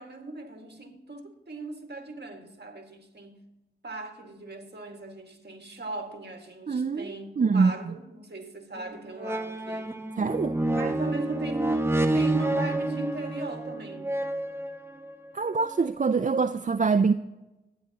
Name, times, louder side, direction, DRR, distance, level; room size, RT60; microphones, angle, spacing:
voice 1, 0.0-3.5 3.8-9.9 10.7-14.1, right 2 dB, 55° right, 1.9 m, -38 dB
voice 2, 6.7-7.0 7.4-7.7 10.2-10.6 15.3-17.1, right 4 dB, 40° right, 0.4 m, -24 dB
sound 1, 8.8-8.9 9.2-15.1 15.8-15.9, right 2 dB, 10° right, 0.9 m, -28 dB
22.5 x 9.6 x 2.9 m
wide cardioid pair, 50°, 20 cm